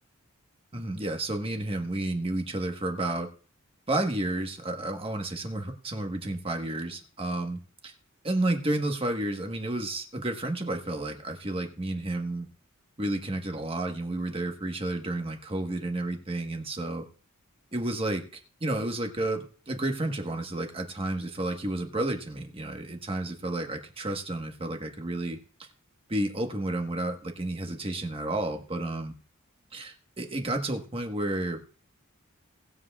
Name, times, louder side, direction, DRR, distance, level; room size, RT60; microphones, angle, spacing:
voice 1, 0.7-3.3 3.9-7.9 8.2-12.5 13.0-17.0 17.7-25.4 26.1-29.1 29.7-31.6, right 1 dB, 25° right, 4 dB, 1.2 m, -31 dB
19.5 x 7.6 x 2.4 m, 0.40 s
head